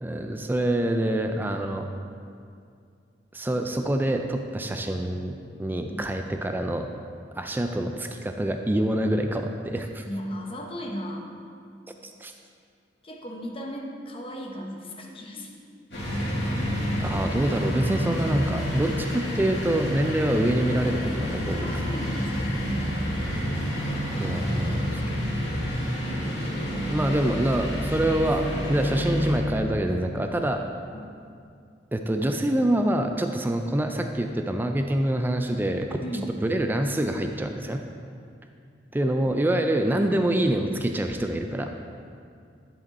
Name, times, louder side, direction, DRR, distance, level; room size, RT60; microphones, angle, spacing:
voice 1, 0.0-1.9 3.3-6.9 7.4-10.0 12.0-12.3 17.0-21.7 23.3-23.7 24.2-25.3 26.9-30.6 31.9-36.0 36.4-37.8 38.9-41.7, right 1 dB, 10° right, 4 dB, 0.3 m, -26 dB
voice 2, 10.0-11.3 13.0-15.5 21.6-22.8 24.0-25.0 30.9-31.1 36.0-36.3, equal, 30° left, 0 dB, 1.0 m, -36 dB
sound 1, 15.9-29.4, equal, 70° left, 2.2 m, -29 dB
10.5 x 5.3 x 4.1 m, 2.3 s
head